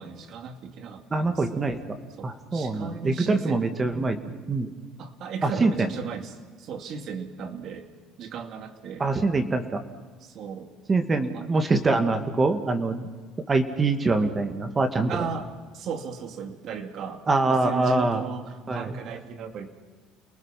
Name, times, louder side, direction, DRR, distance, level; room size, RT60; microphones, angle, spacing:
voice 1, 0.0-1.6 2.2-3.6 5.0-7.9 8.2-9.1 10.2-10.7 11.2-11.5 15.1-19.7, right 5 dB, 55° right, 6 dB, 2.7 m, -36 dB
voice 2, 1.1-1.8 2.2-4.2 4.5-4.7 5.4-5.9 9.0-9.8 10.9-13.1 13.5-15.1 17.3-18.2 18.7-19.0, right 3 dB, 25° right, 7 dB, 2.2 m, -24 dB
29.5 x 19.5 x 6.0 m, 1.4 s
cardioid pair, 110°, 0 cm